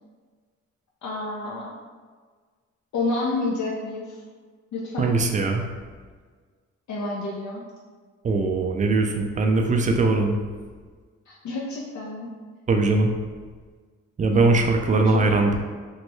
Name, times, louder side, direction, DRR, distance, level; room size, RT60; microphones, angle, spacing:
voice 1, 1.0-1.7 2.9-4.2 4.7-5.1 6.9-7.6 11.3-12.3 14.3-14.7, left 2 dB, 65° left, -4 dB, 0.5 m, -29 dB
voice 2, 5.0-5.6 8.2-10.4 12.7-13.1 14.2-15.6, right 3 dB, 25° right, 3 dB, 0.3 m, -21 dB
3.1 x 2.2 x 3.0 m, 1.5 s
cardioid pair, 90°, 30 cm